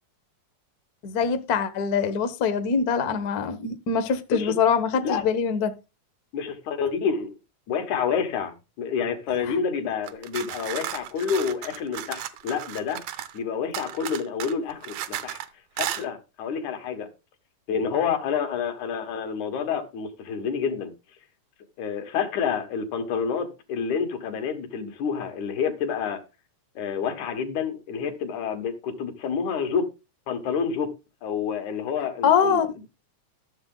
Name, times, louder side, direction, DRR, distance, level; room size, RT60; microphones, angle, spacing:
voice 1, 1.0-5.7 32.2-32.7, left 6 dB, 60° left, 1.0 m, -23 dB
voice 2, 6.3-7.3 7.7-13.0 13.3-15.4 15.8-17.1 17.7-20.9 21.8-26.2 26.8-29.9 30.3-30.9 31.2-32.6, left 6 dB, 85° left, 3.0 m, -28 dB
sound 1, 10.0-13.4 13.7-15.5 15.8-16.0, right 12 dB, 75° right, 2.0 m, -34 dB
13.0 x 7.0 x 3.8 m
omnidirectional pair, 3.3 m